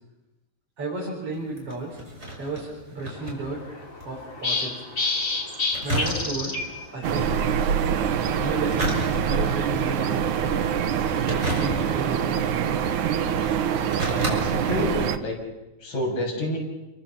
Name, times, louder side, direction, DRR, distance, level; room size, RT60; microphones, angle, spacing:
voice 1, 0.8-2.0 2.4-3.6 4.0-4.8 5.8-6.6 6.9-7.6 8.4-8.9 9.2-10.6 11.3-12.3, right 2 dB, 50° right, -4 dB, 6.2 m, -33 dB
sound 1, 1.3-4.2 4.4-4.5 5.7-6.7 8.5-9.6 10.1-10.5 11.2-12.2 12.9-13.0 13.6-14.4 14.8-14.9, equal, 20° right, 6.3 m, -31 dB
sound 2, 3.1-13.6, left 3 dB, 25° left, 3.0 m, -34 dB
sound 3, 7.0-15.2, right 8 dB, 85° right, 2.7 m, -25 dB
voice 2, 14.3-15.3 15.8-16.6, left 1 dB, 85° left, -1 dB, 8.2 m, -28 dB
29.5 x 23.5 x 7.2 m, 1.0 s
omnidirectional pair, 3.3 m